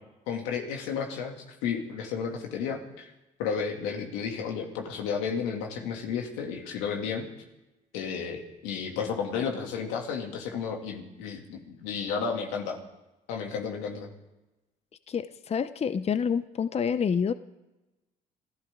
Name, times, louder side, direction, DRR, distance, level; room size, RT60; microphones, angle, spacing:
voice 1, 0.3-1.4 1.6-3.1 3.4-7.3 7.9-12.8 13.3-14.1, left 6 dB, 90° left, 2 dB, 2.5 m, -32 dB
voice 2, 15.1-17.3, left 7 dB, 35° left, 13 dB, 0.7 m, -28 dB
26.5 x 14.0 x 3.7 m, 1.0 s
supercardioid pair, 75°, 19 cm